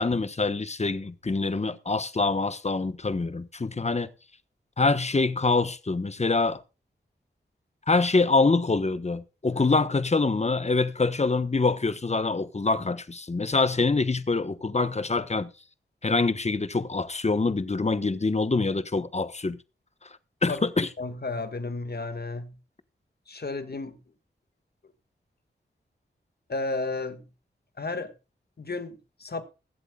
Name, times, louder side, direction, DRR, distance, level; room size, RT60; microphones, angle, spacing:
voice 1, 0.0-4.1 4.8-6.6 7.9-15.5 16.0-19.6 20.4-20.9, left 3 dB, 35° left, 1.1 m, -25 dB
voice 2, 21.0-22.6 23.3-24.0 26.5-27.3 27.8-28.1 28.6-29.4, left 3 dB, 55° left, 1.8 m, -33 dB
22.0 x 8.0 x 2.4 m
cardioid pair, 45°, 20 cm